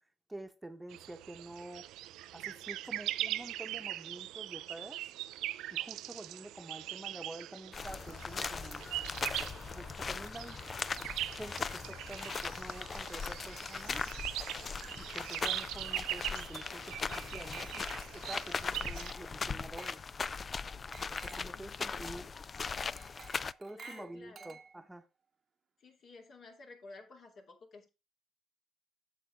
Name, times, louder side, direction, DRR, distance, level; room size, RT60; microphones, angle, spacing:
voice 1, 0.3-1.9 2.3-5.0 5.7-8.8 9.7-10.6 11.3-14.0 15.0-17.9 18.1-20.0 21.1-22.3 23.6-25.0, right 1 dB, 15° right, 1.0 m, -48 dB
sound 1, 0.9-19.1, right 14 dB, 80° right, 0.4 m, -41 dB
sound 2, 7.7-23.5, left 5 dB, 40° left, 0.4 m, -39 dB
Glass, 17.2-18.1 19.0-19.4 19.8-20.1 20.9-21.6 23.0-25.0, right 5 dB, 45° right, 0.9 m, -54 dB
voice 2, 21.5-22.4 23.7-24.5 25.8-27.9, left 3 dB, 60° left, 2.7 m, -54 dB
8.3 x 7.0 x 3.4 m
supercardioid pair, 65°, 0 cm